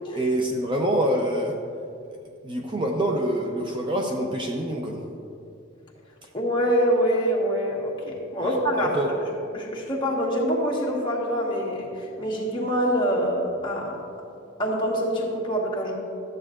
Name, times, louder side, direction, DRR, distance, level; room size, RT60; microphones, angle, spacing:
voice 1, 0.2-1.6 2.1-2.2 2.4-5.0 8.4-9.1, right 1 dB, 25° right, 1 dB, 0.6 m, -26 dB
voice 2, 6.3-9.0 9.5-14.0 14.6-15.9, equal, 25° left, -4 dB, 1.4 m, -25 dB
13.0 x 7.9 x 2.5 m, 2.5 s
head